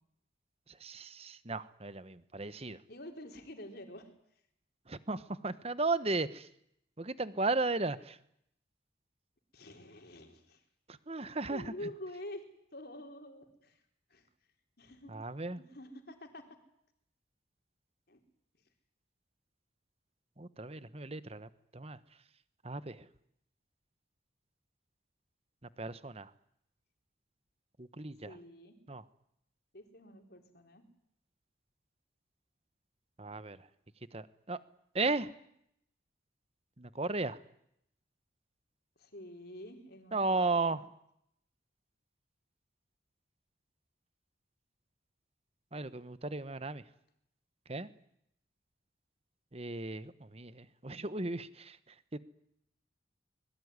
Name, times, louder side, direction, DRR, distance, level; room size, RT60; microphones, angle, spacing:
voice 1, 0.8-2.8 4.9-6.5 7.0-8.2 11.1-11.7 15.1-15.6 20.4-22.0 22.6-23.0 25.8-26.3 27.8-28.3 28.9-29.0 33.2-33.6 34.1-34.6 34.9-35.3 36.8-37.4 40.1-40.8 45.7-46.8 47.7-47.9 49.5-51.8 52.1-52.2, right 3 dB, 30° right, 14 dB, 1.2 m, -35 dB
voice 2, 2.9-4.1 9.5-10.6 10.9-11.0 11.5-12.4 12.7-13.8 14.1-14.3 14.8-15.1 15.6-16.6 18.1-18.2 28.2-28.7 29.7-30.8 39.0-40.8, left 1 dB, 55° left, 4 dB, 4.3 m, -47 dB
25.0 x 22.0 x 9.8 m, 0.75 s
head